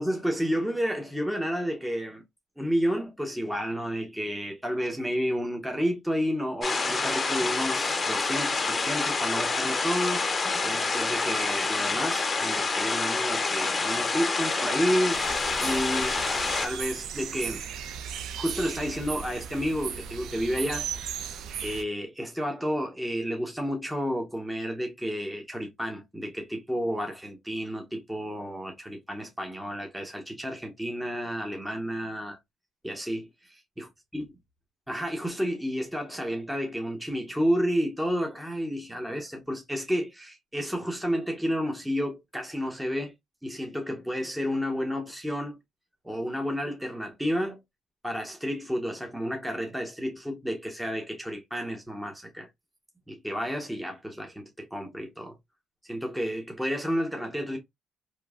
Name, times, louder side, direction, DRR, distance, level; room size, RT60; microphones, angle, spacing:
voice 1, 0.0-2.2 2.6-10.3 10.6-15.2 15.6-16.2 16.6-17.7 18.4-32.4 32.8-34.3 34.9-43.1 43.4-45.6 46.0-47.6 48.0-52.5 53.1-55.4 55.8-57.6, equal, 5° right, 0.8 m, -31 dB
sound 1, 6.6-16.7, left 4 dB, 30° left, 0.6 m, -27 dB
sound 2, 15.1-21.8, right 8 dB, 80° right, 0.3 m, -36 dB
2.9 x 2.5 x 2.4 m
cardioid pair, 90°, 0 cm